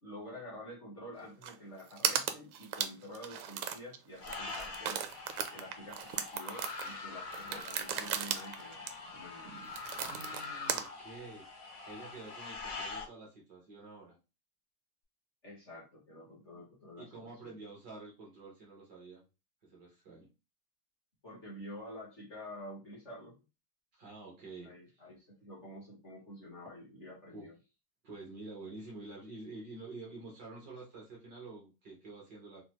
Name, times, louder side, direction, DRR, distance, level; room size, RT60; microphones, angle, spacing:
voice 1, 0.0-5.1 5.5-8.8 9.1-9.5 15.4-17.6 21.2-23.4 24.6-27.6, equal, 20° left, -5 dB, 0.5 m, -48 dB
sound 1, 1.4-1.5 1.8-4.0 4.2-10.9, right 8 dB, 60° right, 0.6 m, -37 dB
sound 2, 4.2-13.1, left 4 dB, 45° left, 1.0 m, -44 dB
voice 2, 10.0-11.4 11.9-14.2 17.0-19.2 19.6-20.3 24.0-24.7 27.3-27.5 28.0-32.6, right 3 dB, 25° right, -3 dB, 0.8 m, -48 dB
3.2 x 2.1 x 2.9 m, 0.29 s
supercardioid pair, 175°, 50 cm